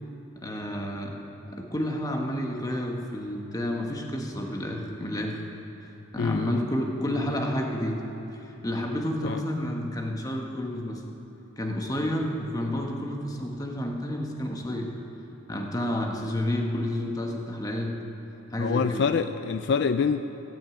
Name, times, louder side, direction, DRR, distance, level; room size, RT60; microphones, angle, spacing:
voice 1, 0.4-1.1 1.5-5.4 6.1-8.0 8.4-11.0 11.6-14.9 15.5-17.9 18.5-19.0, left 1 dB, 20° left, 1 dB, 1.1 m, -30 dB
voice 2, 6.2-6.6 9.2-9.4 18.6-20.2, left 5 dB, 60° left, 10 dB, 0.3 m, -26 dB
17.0 x 6.3 x 8.4 m, 3.0 s
head